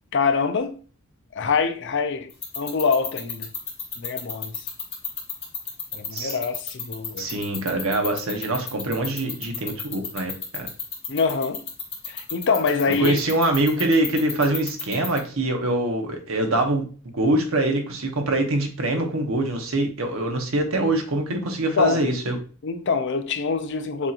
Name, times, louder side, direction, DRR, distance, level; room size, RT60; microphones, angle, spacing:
voice 1, 0.1-0.8 1.3-2.3 2.6-3.5 4.0-4.7 5.9-7.3 11.1-11.6 12.1-13.2 21.3-21.4 21.7-22.0 22.6-24.1, left 5 dB, 55° left, 0.5 m, -24 dB
sound 1, 2.3-15.2, left 7 dB, 25° left, 1.3 m, -30 dB
voice 2, 7.2-10.7 12.9-16.8 17.1-22.4, right 2 dB, 70° right, 1.0 m, -24 dB
7.0 x 2.9 x 2.5 m
head